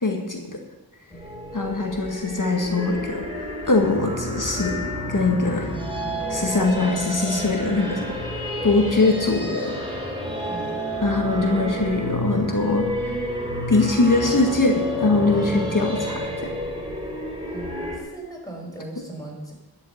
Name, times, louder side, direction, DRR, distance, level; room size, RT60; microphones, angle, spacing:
voice 1, 0.0-0.6 1.5-3.3 3.7-4.8 5.1-5.7 6.3-8.0 8.6-9.8 11.0-12.9 13.7-16.5, left 3 dB, 50° left, 2 dB, 1.8 m, -22 dB
sound 1, 1.1-18.0, equal, 15° right, 3.6 m, -30 dB
voice 2, 10.5-10.8 17.5-19.5, right 2 dB, 10° left, -2 dB, 5.2 m, -38 dB
12.0 x 7.4 x 8.0 m, 1.1 s
wide cardioid pair, 55°, 39 cm